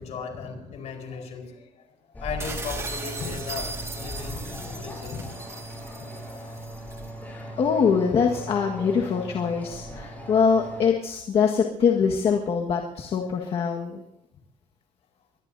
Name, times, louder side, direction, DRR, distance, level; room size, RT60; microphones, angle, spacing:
voice 1, 0.0-5.3 6.0-6.6 9.9-10.0, left 5 dB, 70° left, 4 dB, 4.6 m, -37 dB
sound 1, 2.1-10.9, equal, 15° left, 6.8 m, -38 dB
sound 2, 2.4-7.1, right 3 dB, 20° right, 2.0 m, -38 dB
voice 2, 7.3-14.0, left 6 dB, 50° left, 0 dB, 1.7 m, -23 dB
24.5 x 19.5 x 2.8 m, 0.86 s
cardioid pair, 145°, 12 cm